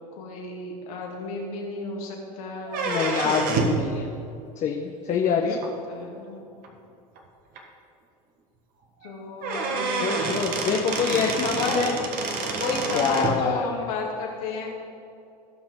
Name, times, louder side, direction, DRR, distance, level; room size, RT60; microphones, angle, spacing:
voice 1, 0.2-2.9 5.2-5.3 5.9-6.4 9.0-10.6 11.4-11.8 12.6-14.7, left 3 dB, 70° left, -2 dB, 2.6 m, -32 dB
sound 1, 2.7-3.9 5.6-5.7 6.6-6.7 7.2-7.3 7.6-7.7 9.0-9.1 9.4-13.4, right 3 dB, 50° right, 1.6 m, -28 dB
voice 2, 2.8-4.1 4.6-5.6 10.0-11.9 12.9-13.7, left 6 dB, 40° left, 1 dB, 1.0 m, -26 dB
17.5 x 5.9 x 3.8 m, 2.5 s
hypercardioid pair, 90°, 19 cm